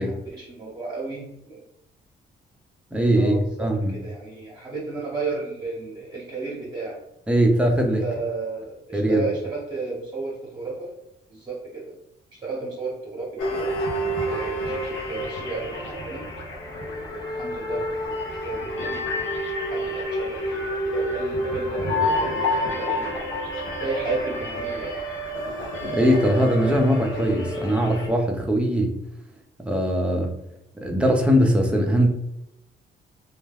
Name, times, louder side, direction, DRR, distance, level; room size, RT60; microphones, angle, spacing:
voice 1, 0.3-1.6 3.1-7.0 8.0-10.9 11.3-11.9 12.4-13.7 14.3-16.3 16.7-18.1 18.4-19.3 19.7-23.2 23.8-25.0, right 3 dB, 20° right, -5 dB, 0.8 m, -33 dB
voice 2, 2.9-4.0 7.3-8.0 8.9-9.3 25.9-29.0 29.6-30.4 30.8-32.1, equal, 5° right, 1 dB, 0.5 m, -21 dB
sound 1, 13.4-28.1, equal, 80° left, 0.7 m, -28 dB
2.3 x 2.1 x 3.3 m, 0.83 s
cardioid pair, 90°, 20 cm